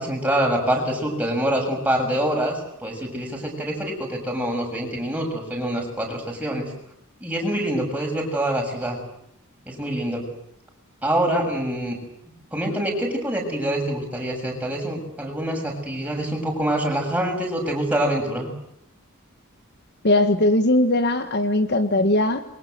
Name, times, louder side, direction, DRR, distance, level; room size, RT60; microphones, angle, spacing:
voice 1, 0.0-6.7 7.2-9.0 9.7-10.3 11.0-12.0 12.5-18.5, right 1 dB, 5° right, 1 dB, 7.1 m, -25 dB
voice 2, 20.0-22.4, left 1 dB, 50° left, 9 dB, 1.6 m, -19 dB
27.5 x 23.5 x 8.0 m, 0.75 s
head